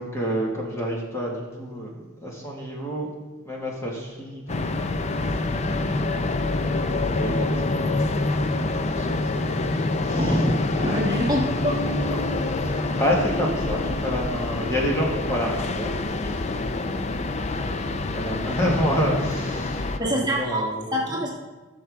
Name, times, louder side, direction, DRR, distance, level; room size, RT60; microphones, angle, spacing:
voice 1, 0.0-3.1 3.4-4.7 5.0-5.1 7.1-9.3 9.9-10.5 12.6-17.2 17.9-21.2, equal, 15° left, -3 dB, 1.8 m, -29 dB
sound 1, 4.5-20.0, left 2 dB, 35° left, 0.5 m, -26 dB
voice 2, 10.8-11.8 20.0-20.6 20.9-21.3, equal, 20° right, -4 dB, 1.5 m, -25 dB
15.0 x 6.7 x 3.5 m, 1.2 s
head